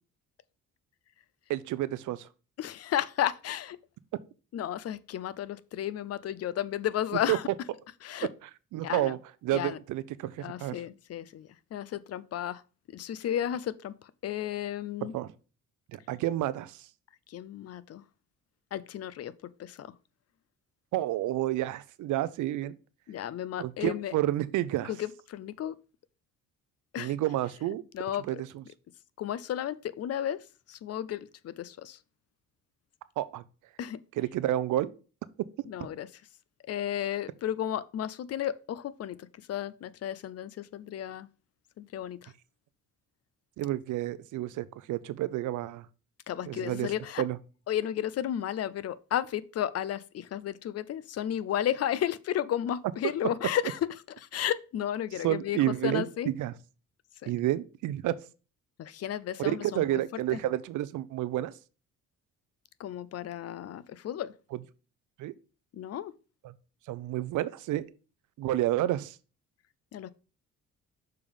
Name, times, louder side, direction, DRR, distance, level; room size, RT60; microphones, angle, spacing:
voice 1, 1.5-2.3 7.3-7.4 8.7-9.2 9.4-10.7 15.1-15.3 15.9-16.8 20.9-22.8 23.6-24.9 27.0-27.8 28.3-28.5 33.2-33.4 34.2-34.9 43.6-45.9 46.5-46.9 47.2-47.4 55.2-56.0 56.4-56.5 57.3-58.2 59.4-61.5 65.2-65.3 66.9-67.8 68.4-69.2, right 14 dB, 80° right, 0.6 m, -30 dB
voice 2, 2.6-3.8 4.5-7.5 8.0-8.3 8.8-9.2 9.5-9.8 10.4-12.6 12.9-15.1 17.3-18.0 18.7-19.9 23.1-24.1 24.9-25.8 26.9-27.1 27.9-28.4 29.2-32.0 33.8-34.0 35.6-36.2 36.7-41.3 41.8-42.3 46.3-47.2 47.7-53.9 54.2-56.3 57.2-57.3 58.8-60.0 60.3-60.4 62.8-64.3 65.7-66.1 69.9-70.1, left 11 dB, 55° left, 0.5 m, -33 dB
6.7 x 3.6 x 5.3 m
cardioid pair, 90°, 30 cm